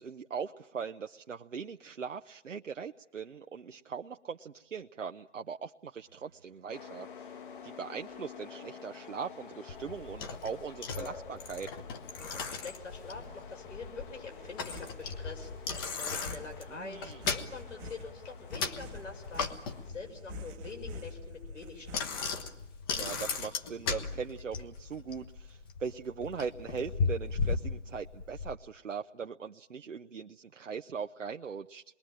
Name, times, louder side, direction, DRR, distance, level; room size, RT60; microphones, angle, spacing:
voice 1, 0.0-7.4 7.6-11.8 16.7-17.3 22.9-31.8, right 6 dB, 85° right, 4 dB, 0.9 m, -40 dB
sound 1, 6.1-22.3, left 1 dB, 15° right, 1.0 m, -52 dB
sound 2, 6.7-19.9, left 6 dB, 45° left, 1.6 m, -50 dB
Bicycle, 9.7-28.5, left 5 dB, 20° left, 1.0 m, -37 dB
voice 2, 12.2-22.2, left 4 dB, 80° left, 2 dB, 6.7 m, -46 dB
27.0 x 21.5 x 8.9 m, 0.85 s
figure-of-eight pair, 150°, 37 cm